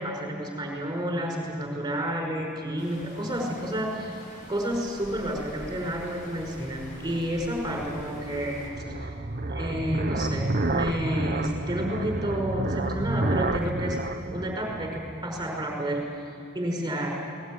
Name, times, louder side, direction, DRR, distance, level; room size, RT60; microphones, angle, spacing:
voice 1, 0.0-8.6 9.0-9.1 9.5-14.0 14.3-16.0 16.5-17.2, equal, 15° right, 0 dB, 5.5 m, -30 dB
sound 1, 2.8-8.7, equal, 35° left, 5.5 m, -46 dB
sound 2, 6.1-15.6, right 2 dB, 40° right, 1.1 m, -31 dB
22.0 x 19.5 x 9.7 m, 2.6 s
head